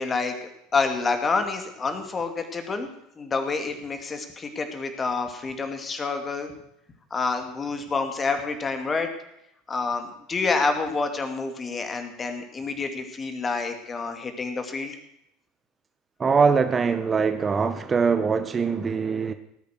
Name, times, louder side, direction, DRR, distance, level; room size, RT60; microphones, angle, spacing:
voice 1, 0.0-2.9 3.2-6.5 7.1-9.1 9.7-15.0, left 4 dB, 25° left, 2.5 m, -28 dB
voice 2, 16.2-19.3, right 5 dB, 25° right, 0.9 m, -22 dB
18.5 x 8.5 x 6.6 m
figure-of-eight pair, 75°, 0 cm